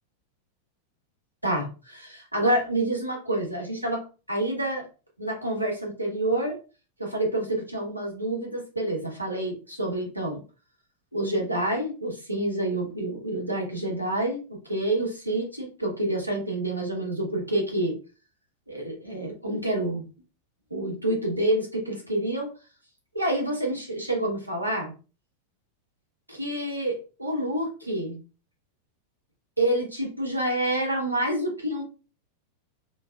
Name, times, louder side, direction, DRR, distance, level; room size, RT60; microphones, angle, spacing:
voice 1, 1.4-4.0 4.3-4.8 5.2-6.6 7.0-10.4 11.1-18.0 18.7-20.0 20.7-22.5 23.1-24.9 26.3-28.2 29.6-31.8, right 1 dB, 90° right, -1 dB, 1.2 m, -28 dB
3.9 x 3.1 x 2.4 m, 0.34 s
figure-of-eight pair, 90°, 0 cm